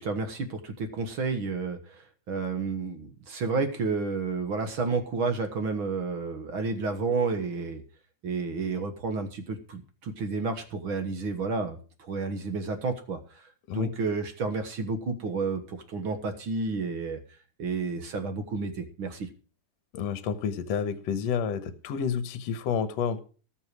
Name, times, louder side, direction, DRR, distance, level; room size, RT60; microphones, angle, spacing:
voice 1, 0.0-7.8 8.2-17.2 17.6-19.3, right 4 dB, 50° right, 7 dB, 1.8 m, -31 dB
voice 2, 19.9-23.2, left 7 dB, 65° left, 11 dB, 2.0 m, -29 dB
18.5 x 6.5 x 4.8 m, 0.37 s
omnidirectional pair, 3.7 m